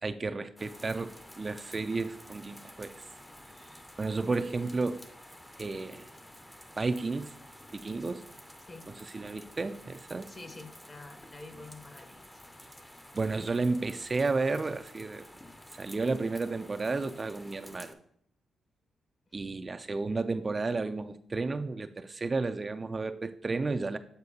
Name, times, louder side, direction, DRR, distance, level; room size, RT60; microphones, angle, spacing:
voice 1, 0.0-3.0 3.6-5.0 5.6-6.1 6.8-7.3 7.7-8.3 9.1-10.3 13.1-15.3 15.7-18.0 19.3-24.0, right 3 dB, 35° right, 10 dB, 0.3 m, -32 dB
sound 1, 0.6-17.9, left 1 dB, 10° left, 0.6 m, -51 dB
voice 2, 10.3-12.4 19.3-19.4, left 2 dB, 35° left, 7 dB, 1.0 m, -48 dB
7.9 x 4.4 x 2.8 m, 0.68 s
supercardioid pair, 60°, 0 cm